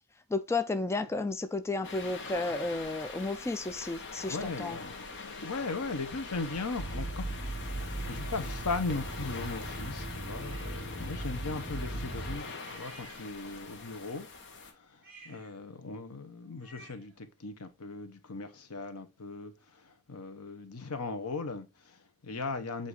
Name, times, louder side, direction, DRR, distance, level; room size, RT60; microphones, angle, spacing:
voice 1, 0.3-4.8, left 3 dB, 10° left, 0.3 m, -32 dB
sound 1, 1.8-14.7, left 4 dB, 55° left, 1.1 m, -43 dB
voice 2, 4.3-7.2 7.7-22.9, left 3 dB, 80° left, 1.0 m, -38 dB
sound 2, 6.8-12.4, right 1 dB, 10° right, 0.8 m, -38 dB
sound 3, 10.4-10.9 12.6-13.7 14.9-17.2, right 2 dB, 45° right, 4.0 m, -55 dB
7.7 x 2.7 x 4.7 m
head